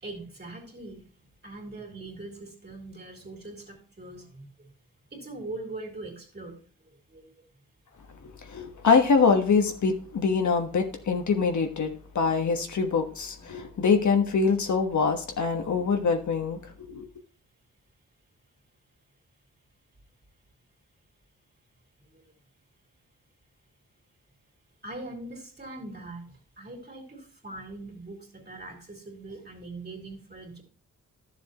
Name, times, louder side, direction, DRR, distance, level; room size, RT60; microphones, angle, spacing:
voice 1, 0.0-1.0 1.4-4.5 5.1-6.6 7.1-7.3 13.4-13.6 24.8-26.2 26.6-30.6, right 2 dB, 30° right, 3.3 m, -41 dB
voice 2, 8.5-17.1, left 5 dB, 60° left, 1.4 m, -24 dB
11.5 x 7.2 x 3.0 m
cardioid pair, 75°, 32 cm